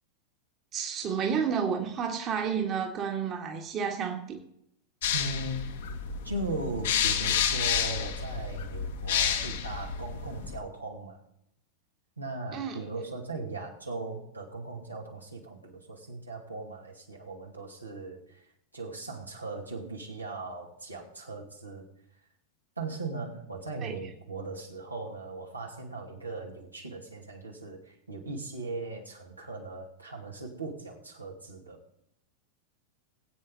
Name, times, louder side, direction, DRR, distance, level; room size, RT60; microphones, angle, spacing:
voice 1, 0.7-4.4 12.5-12.8 23.8-23.9, right 7 dB, 30° right, 1.7 m, -31 dB
sound 1, 5.0-10.6, left 8 dB, 60° left, 1.4 m, -30 dB
voice 2, 5.1-5.7 6.2-11.2 12.2-18.5 18.7-21.8 22.8-31.8, right 3 dB, 85° right, 2.4 m, -38 dB
19.5 x 8.8 x 3.9 m
figure-of-eight pair, 90°, 0 cm